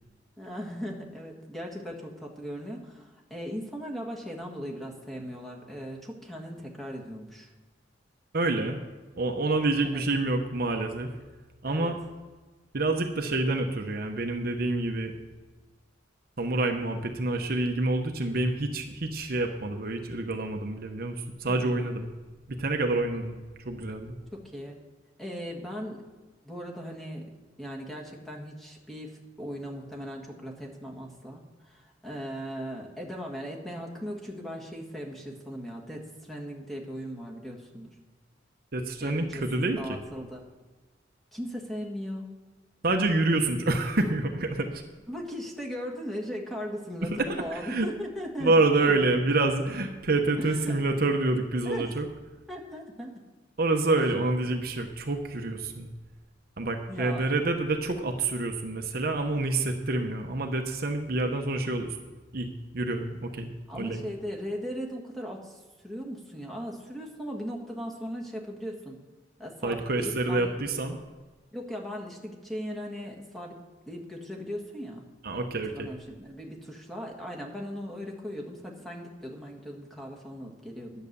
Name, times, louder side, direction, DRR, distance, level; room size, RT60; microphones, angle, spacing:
voice 1, 0.4-7.5 9.8-10.0 11.7-11.9 21.5-21.9 24.3-24.8 25.2-26.0 26.4-27.2 27.6-37.9 39.0-40.4 41.3-42.3 45.1-48.5 48.9-49.1 50.4-50.8 51.7-51.9 52.5-53.1 54.0-54.1 56.9-57.3 63.7-65.6 65.8-69.0 69.4-70.6 71.5-73.5 73.9-75.0 75.7-81.1, equal, ahead, -2 dB, 1.8 m, -38 dB
voice 2, 8.3-8.8 9.2-11.2 11.6-12.0 12.7-15.1 16.4-22.1 22.5-23.4 23.6-24.1 38.7-40.0 42.8-44.8 47.5-47.9 48.4-52.1 53.6-55.9 56.6-62.0 62.3-64.0 69.6-71.0 75.2-75.9, right 2 dB, 55° right, 4 dB, 0.9 m, -27 dB
11.0 x 8.0 x 6.8 m, 1.3 s
head